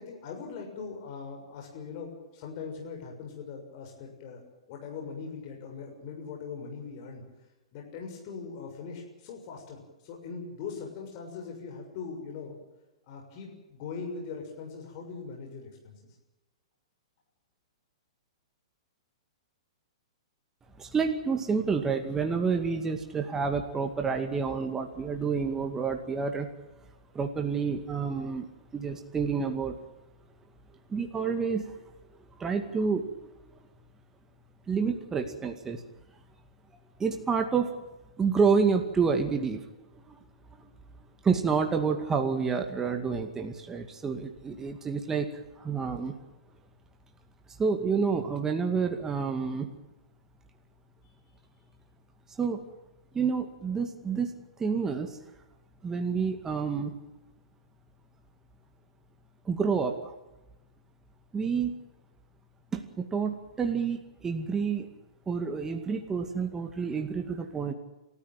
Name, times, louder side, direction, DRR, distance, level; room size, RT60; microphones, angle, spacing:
voice 1, 0.0-4.4 4.7-7.2 7.7-12.6 13.0-15.9, left 5 dB, 45° left, 1 dB, 6.8 m, -41 dB
voice 2, 20.8-26.5 27.1-29.8 30.9-31.8 32.4-33.1 34.7-35.8 37.0-37.7 38.2-39.6 40.1-40.2 40.6-40.7 41.2-45.3 45.6-46.1 47.6-49.7 52.4-52.6 53.1-54.3 54.6-55.2 55.8-57.0 59.5-60.1 61.3-61.7 62.7-64.9 65.3-67.7, right 5 dB, 15° right, 5 dB, 2.2 m, -29 dB
29.5 x 14.0 x 9.2 m, 1.0 s
hypercardioid pair, 115°, 3 cm